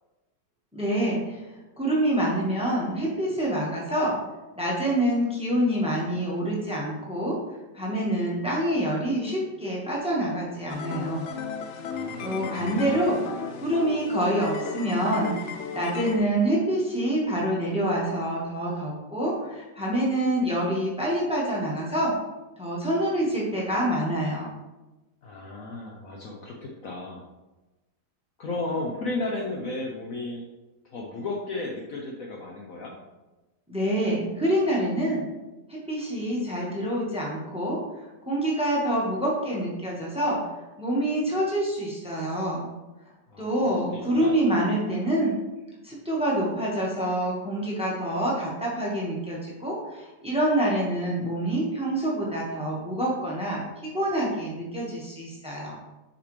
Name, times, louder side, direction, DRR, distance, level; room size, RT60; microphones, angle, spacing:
voice 1, 0.7-1.4 1.8-4.2 4.6-7.4 7.7-11.3 12.2-22.1 22.6-24.5 33.7-35.3 35.7-40.4 40.8-42.7 43.4-45.4 45.8-55.8, right 1 dB, 5° right, -4 dB, 1.2 m, -26 dB
sound 1, 10.7-16.2, left 6 dB, 90° left, 0.6 m, -35 dB
voice 2, 11.9-13.0 25.2-27.2 28.4-30.4 30.9-32.9 43.3-43.5 43.9-44.4, left 2 dB, 60° left, 0 dB, 1.1 m, -34 dB
6.7 x 4.9 x 3.2 m, 1.1 s
omnidirectional pair, 1.9 m